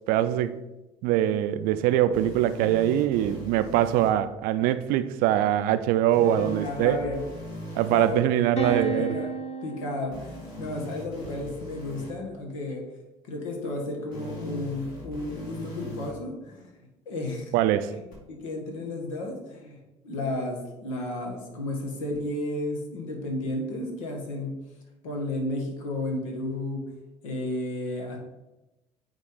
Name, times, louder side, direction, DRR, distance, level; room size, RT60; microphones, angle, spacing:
voice 1, 0.1-0.6 1.0-7.0 7.7-9.1 17.5-17.9, right 12 dB, 60° right, 0.4 m, -23 dB
sound 1, 2.1-4.1 6.1-8.1 10.1-12.1 14.1-16.1 18.1-18.2, equal, 60° left, 2.4 m, -40 dB
sound 2, 6.2-7.9 8.6-10.5, right 4 dB, 40° left, 1.4 m, -35 dB
voice 2, 6.4-7.2 7.9-8.2 8.6-9.3 9.6-12.8 13.2-16.7 17.0-17.5 17.9-18.0 18.3-24.5 25.0-28.2, left 1 dB, 75° left, 1.4 m, -33 dB
8.9 x 3.5 x 3.8 m
hypercardioid pair, 60°, 17 cm